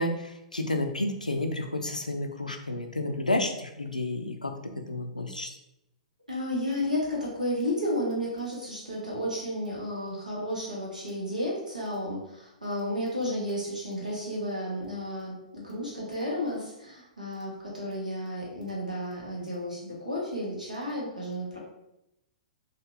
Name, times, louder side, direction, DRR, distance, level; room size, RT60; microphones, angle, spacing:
voice 1, 0.0-4.5 4.9-5.6, left 1 dB, 85° left, 5 dB, 0.5 m, -30 dB
voice 2, 6.3-21.6, equal, 85° right, -4 dB, 1.3 m, -32 dB
4.0 x 2.6 x 2.8 m, 0.87 s
figure-of-eight pair, 110°, 4 cm